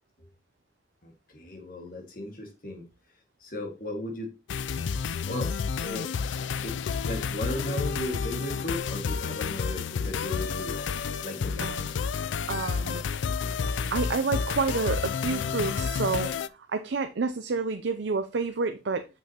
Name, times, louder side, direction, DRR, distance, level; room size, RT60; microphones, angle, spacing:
voice 1, 1.0-2.8 3.4-4.3 5.3-5.5 5.8-6.1 6.6-10.8 11.2-11.8, left 1 dB, 50° left, 1.8 m, -36 dB
sound 1, 4.5-16.5, left 6 dB, 80° left, 0.4 m, -30 dB
voice 2, 11.6-11.9 12.5-13.0 13.9-16.3 16.7-19.1, right 4 dB, 70° right, 0.5 m, -29 dB
7.2 x 6.0 x 2.9 m
head